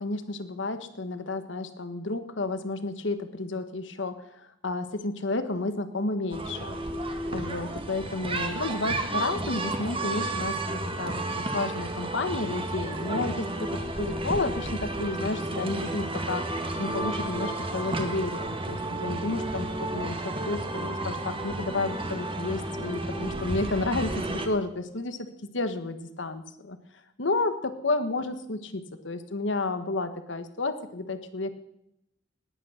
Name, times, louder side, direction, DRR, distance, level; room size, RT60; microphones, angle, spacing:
voice 1, 0.0-6.8 7.3-16.4 16.8-25.3 25.5-26.8 27.2-31.5, left 2 dB, 75° left, 10 dB, 1.3 m, -31 dB
sound 1, 6.3-24.5, right 2 dB, 30° right, 1.6 m, -32 dB
19.5 x 9.1 x 6.4 m, 0.80 s
head